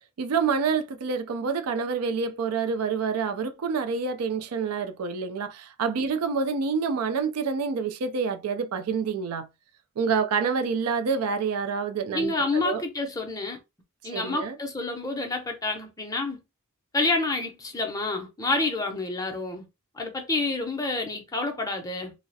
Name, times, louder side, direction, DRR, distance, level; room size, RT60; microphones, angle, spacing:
voice 1, 0.2-9.5 10.0-12.8 14.1-14.6, right 5 dB, 90° right, 0.4 m, -27 dB
voice 2, 12.1-13.6 14.0-16.4 16.9-19.7 19.9-22.1, left 3 dB, 15° left, 0.5 m, -28 dB
2.3 x 2.0 x 2.6 m
head